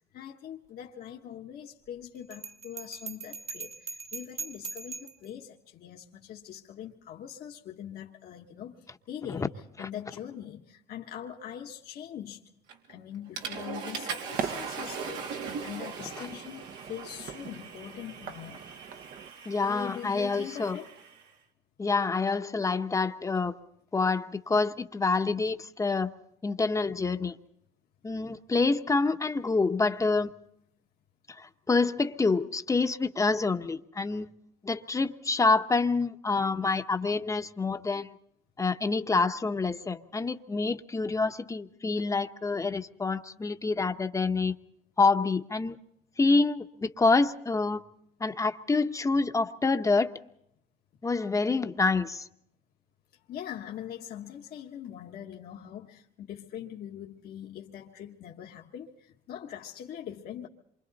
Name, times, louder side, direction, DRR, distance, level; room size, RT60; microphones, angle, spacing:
voice 1, 0.1-9.5 9.8-12.4 12.9-18.6 19.6-20.9 53.1-60.5, left 10 dB, 65° left, 1.4 m, -42 dB
Bell, 2.3-5.3, right 5 dB, 40° right, 1.6 m, -40 dB
Water / Toilet flush, 12.7-12.9 13.4-21.2, right 5 dB, 90° right, 3.1 m, -40 dB
sound 1, 14.3-19.3, right 7 dB, 60° right, 1.1 m, -41 dB
voice 2, 19.4-20.8 21.8-23.6 23.9-26.1 26.4-27.3 28.0-30.3 31.4-34.3 34.6-38.1 38.6-44.5 45.0-45.8 46.2-47.8 48.2-50.1 51.0-52.3, left 3 dB, 20° left, 1.0 m, -27 dB
27.5 x 24.5 x 4.1 m
cardioid pair, 110°, 17 cm